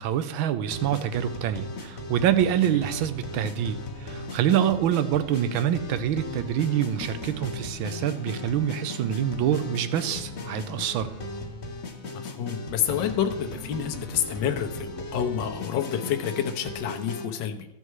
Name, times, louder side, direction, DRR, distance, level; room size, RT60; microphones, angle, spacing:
voice 1, 0.0-11.1, right 10 dB, 75° right, 12 dB, 1.5 m, -26 dB
sound 1, 0.6-17.3, left 2 dB, 45° left, 1.0 m, -37 dB
voice 2, 12.1-17.7, left 9 dB, 65° left, 5 dB, 1.3 m, -29 dB
15.0 x 5.5 x 4.7 m, 0.81 s
omnidirectional pair, 2.3 m